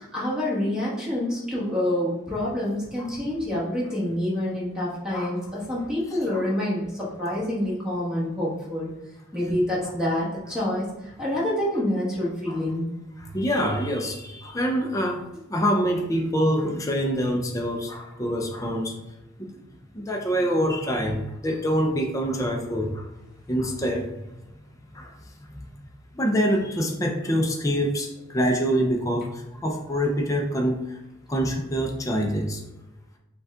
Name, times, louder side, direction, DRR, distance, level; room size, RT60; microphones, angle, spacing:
voice 1, 0.0-8.9 9.3-10.9 11.2-12.9, left 1 dB, 5° right, -7 dB, 1.2 m, -27 dB
voice 2, 6.1-6.4 12.5-12.6 13.2-15.2 15.5-19.0 19.4-19.6 19.9-23.1 23.5-24.2 24.9-25.1 25.5-25.7 26.1-31.0 31.3-32.6, equal, 15° left, 1 dB, 0.4 m, -25 dB
5.2 x 2.3 x 3.6 m, 0.95 s
head